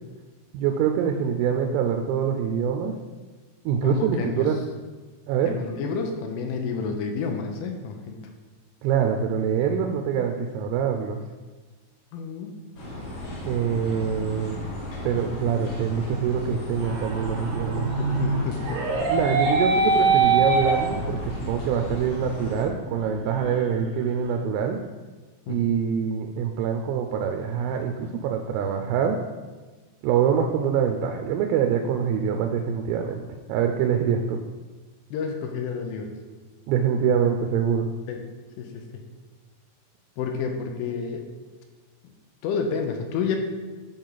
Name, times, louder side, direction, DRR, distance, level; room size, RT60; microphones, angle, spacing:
voice 1, 0.5-3.0 3.7-4.6 5.3-5.6 8.8-11.2 13.4-14.6 15.0-17.9 19.1-24.8 25.5-29.2 30.0-33.2 33.5-34.4 36.7-37.9, right 7 dB, 85° right, 4 dB, 3.2 m, -25 dB
voice 2, 3.8-4.5 5.5-8.2 12.1-12.5 18.0-18.9 25.5-25.7 35.1-36.1 38.1-38.3 38.6-39.0 40.2-41.3 42.0-42.1 42.4-43.4, left 5 dB, 80° left, 4 dB, 3.1 m, -30 dB
sound 1, 12.8-22.6, left 1 dB, 55° left, 3.5 m, -35 dB
sound 2, 16.8-21.4 21.8-21.9 22.4-22.5 22.9-24.1, right 3 dB, 70° right, 2.4 m, -24 dB
10.5 x 4.4 x 4.0 m, 1.3 s
omnidirectional pair, 5.9 m